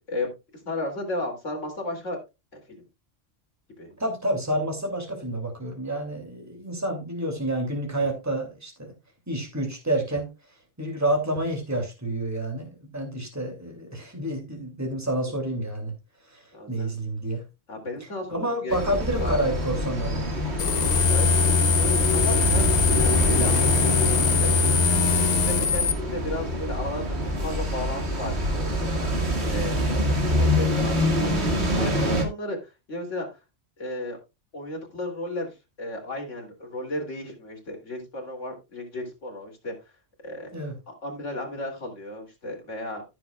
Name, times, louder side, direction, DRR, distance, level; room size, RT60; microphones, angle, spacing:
voice 1, 0.7-2.2 2.5-2.8 3.8-4.0 16.5-16.9 17.7-19.4 20.9-24.1 24.4-24.5 25.2-33.4 33.8-34.2 34.5-39.7 40.2-40.5 41.0-43.0, left 1 dB, 75° left, 1 dB, 3.4 m, -34 dB
voice 2, 4.0-8.9 9.3-10.3 10.8-15.9 16.2-17.4 18.3-20.3 31.9-32.2 40.5-40.8, right 1 dB, 15° right, 2 dB, 2.8 m, -29 dB
sound 1, 18.7-32.2, equal, 60° right, 2.3 m, -26 dB
sound 2, 20.6-25.9, left 4 dB, 40° left, 0.7 m, -21 dB
14.5 x 6.9 x 2.4 m, 0.25 s
omnidirectional pair, 1.3 m